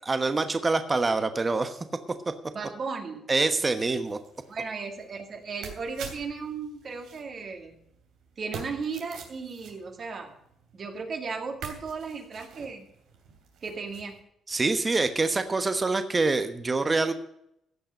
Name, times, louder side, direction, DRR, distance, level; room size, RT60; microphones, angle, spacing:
voice 1, 0.1-1.8 3.3-4.2 14.5-17.1, right 3 dB, 25° right, 9 dB, 1.1 m, -25 dB
voice 2, 2.5-3.2 4.5-7.8 8.4-10.3 10.7-12.8 13.6-14.2, right 5 dB, 50° right, 4 dB, 2.2 m, -35 dB
sound 1, 3.8-14.2 14.5-15.8, right 5 dB, 80° right, 2.7 m, -47 dB
15.5 x 5.7 x 7.6 m, 0.76 s
cardioid pair, 90°, 0 cm